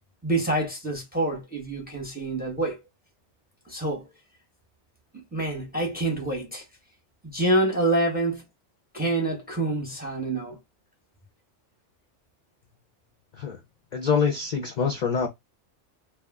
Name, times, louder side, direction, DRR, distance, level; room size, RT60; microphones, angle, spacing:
voice 1, 0.2-2.8 3.7-4.1 5.1-6.6 7.2-8.4 8.9-10.6, right 2 dB, 10° right, 0.6 m, -27 dB
voice 2, 13.9-15.3, left 6 dB, 55° left, 0.4 m, -25 dB
2.3 x 2.1 x 3.3 m
omnidirectional pair, 1.2 m